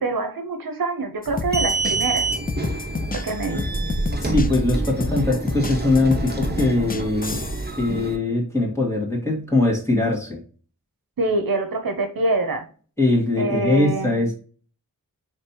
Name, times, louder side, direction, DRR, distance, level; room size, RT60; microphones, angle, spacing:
voice 1, 0.0-2.3 3.1-3.7 11.2-12.6 13.4-14.1, right 2 dB, 75° right, 6 dB, 0.7 m, -25 dB
sound 1, 1.2-7.7, left 4 dB, 25° left, 0.4 m, -30 dB
sound 2, 1.3-8.2, right 3 dB, 30° right, 0.9 m, -27 dB
voice 2, 4.2-7.4 7.8-10.4 13.0-14.3, left 2 dB, 10° left, -3 dB, 1.9 m, -21 dB
5.2 x 3.2 x 2.8 m, 0.41 s
wide cardioid pair, 65°, 35 cm